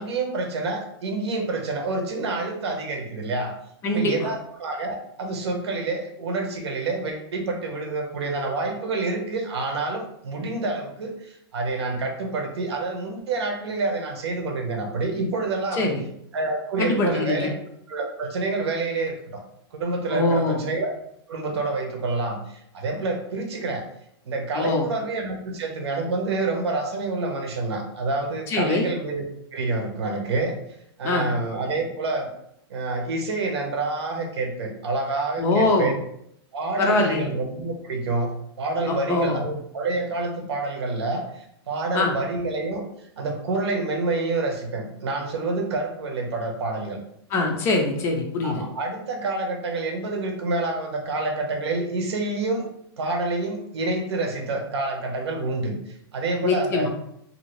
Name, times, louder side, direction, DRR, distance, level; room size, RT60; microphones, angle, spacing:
voice 1, 0.0-3.5 3.9-15.8 16.3-17.5 17.9-19.4 19.7-20.9 21.3-23.8 24.2-29.2 29.5-30.6 31.0-32.3 32.7-36.0 36.5-42.8 43.2-47.0 48.4-52.7 53.0-56.9, right 3 dB, 85° right, 3 dB, 0.8 m, -28 dB
voice 2, 3.8-4.3 15.7-16.0 16.8-17.5 20.1-20.7 24.5-24.9 28.5-28.9 31.0-31.3 35.4-35.9 36.8-37.3 38.9-39.4 41.9-42.1 47.3-48.6 56.4-56.9, left 2 dB, 20° left, 2 dB, 0.3 m, -23 dB
2.7 x 2.6 x 3.0 m, 0.74 s
supercardioid pair, 160°, 14 cm